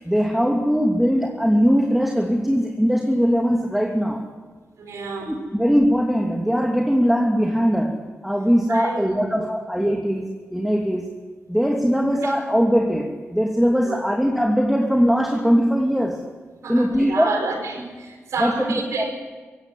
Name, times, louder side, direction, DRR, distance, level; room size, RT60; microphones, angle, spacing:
voice 1, 0.0-4.3 5.3-11.1 11.5-16.2 16.7-17.3 18.4-18.5 19.0-19.1, equal, 5° right, 1 dB, 2.9 m, -20 dB
voice 2, 4.8-5.3 8.7-9.3 12.2-12.3 13.9-14.0 16.6-19.1, right 4 dB, 85° right, 4 dB, 4.8 m, -30 dB
17.5 x 16.5 x 9.5 m, 1.4 s
cardioid pair, 45°, 5 cm